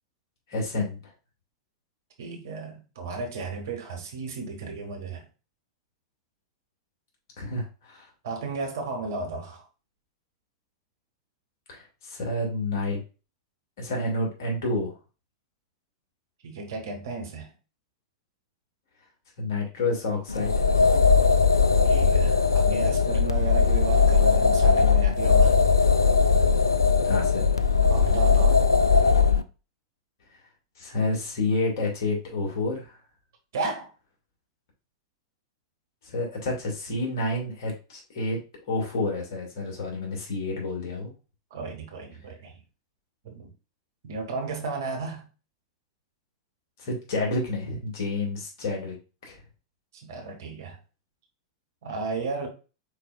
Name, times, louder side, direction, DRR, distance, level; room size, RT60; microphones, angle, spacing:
voice 1, 0.5-1.0 7.4-8.1 11.7-13.0 13.8-14.9 19.4-20.5 27.0-27.4 30.8-33.0 36.0-38.4 38.7-41.1 46.8-49.0 49.2-49.4, left 2 dB, 50° left, 2.1 m, -29 dB
voice 2, 2.2-5.2 8.2-9.6 16.4-17.5 21.8-25.5 27.9-28.6 33.5-33.9 41.5-42.5 43.2-43.5 44.0-45.3 50.0-50.8 51.8-52.5, right 3 dB, 55° right, 1.5 m, -34 dB
sound 1, 20.3-29.4, left 5 dB, 75° left, 0.4 m, -20 dB
4.9 x 4.5 x 2.4 m
figure-of-eight pair, 95°, 2 cm